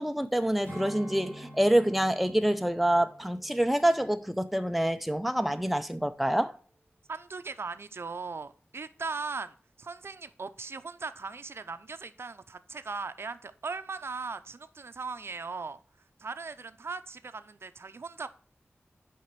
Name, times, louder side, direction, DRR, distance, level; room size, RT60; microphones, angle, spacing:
voice 1, 0.0-6.5, right 1 dB, ahead, 0.5 m, -26 dB
Strum, 0.6-5.4 5.7-6.0, equal, 35° left, 2.5 m, -48 dB
voice 2, 7.1-15.8 16.2-18.3, right 4 dB, 70° right, 0.5 m, -38 dB
7.3 x 5.0 x 4.5 m
wide cardioid pair, 85°, 4 cm